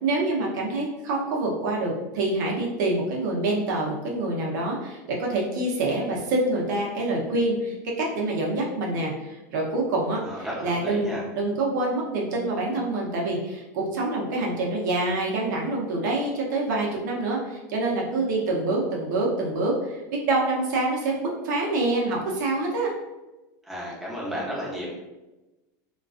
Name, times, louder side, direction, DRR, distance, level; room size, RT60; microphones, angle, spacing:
voice 1, 0.0-22.9, right 2 dB, 80° right, -2 dB, 0.6 m, -26 dB
voice 2, 10.2-11.2 23.6-24.9, equal, ahead, -7 dB, 0.7 m, -33 dB
2.3 x 2.2 x 2.4 m, 1.0 s
supercardioid pair, 135°, 10 cm